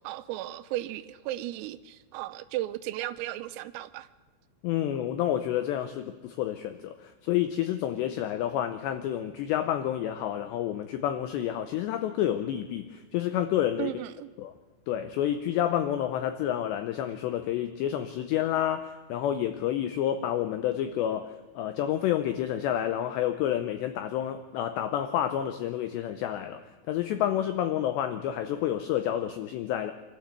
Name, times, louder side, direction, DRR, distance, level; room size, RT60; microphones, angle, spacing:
voice 1, 0.0-4.1 13.8-14.3, right 15 dB, 85° right, 12 dB, 3.5 m, -35 dB
voice 2, 4.6-13.9 14.4-14.5 14.9-29.9, left 11 dB, 85° left, 9 dB, 2.5 m, -29 dB
25.0 x 13.0 x 8.1 m, 1.4 s
omnidirectional pair, 6.0 m